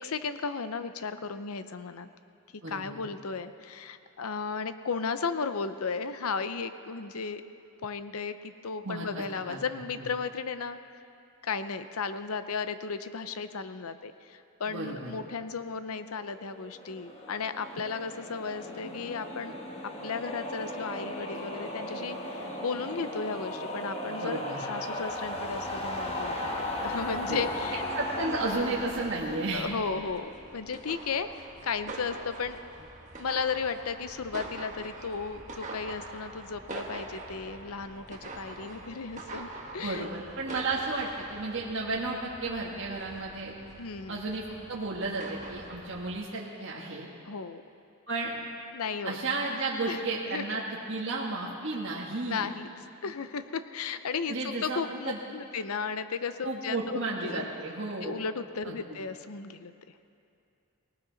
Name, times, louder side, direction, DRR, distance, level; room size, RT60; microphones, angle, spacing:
voice 1, 0.0-2.1 2.7-7.4 7.8-10.8 11.4-19.5 20.0-27.9 29.5-32.6 33.2-40.1 43.8-44.2 47.3-47.6 48.7-49.2 49.9-50.0 50.3-50.4 52.2-52.7 53.0-57.5 58.0-59.7, left 5 dB, 75° left, 11 dB, 0.7 m, -35 dB
voice 2, 2.6-3.0 8.8-9.6 9.9-10.1 14.7-15.1 24.1-24.6 27.3-27.5 27.9-29.7 39.8-43.5 44.1-47.1 48.1-48.4 49.0-50.6 50.9-52.5 54.3-55.2 56.4-58.2 58.6-59.0, right 3 dB, 55° right, -3 dB, 1.5 m, -33 dB
sound 1, 16.3-30.7, left 1 dB, 25° left, 1.5 m, -36 dB
sound 2, 28.2-46.2, right 2 dB, 35° right, 1.4 m, -45 dB
19.5 x 18.5 x 4.0 m, 2.6 s
head